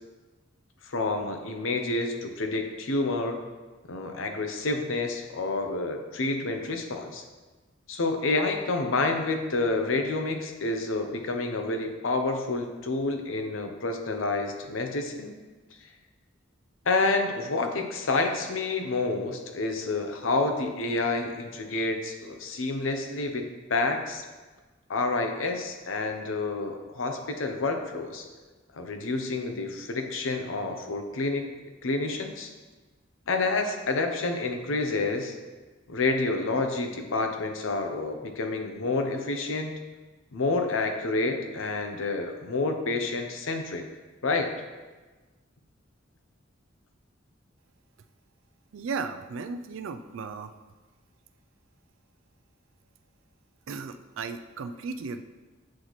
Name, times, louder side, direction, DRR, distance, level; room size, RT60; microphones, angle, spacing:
voice 1, 0.8-3.4 3.9-7.2 7.9-15.4 16.9-23.4 23.7-24.2 24.9-28.3 28.7-31.5 31.8-32.5 33.3-35.3 35.9-39.7 40.3-43.8 44.2-44.5, left 3 dB, 90° left, 5 dB, 0.7 m, -29 dB
voice 2, 48.7-50.5 53.7-55.2, right 4 dB, 85° right, 9 dB, 0.4 m, -35 dB
8.5 x 4.1 x 3.1 m, 1.3 s
head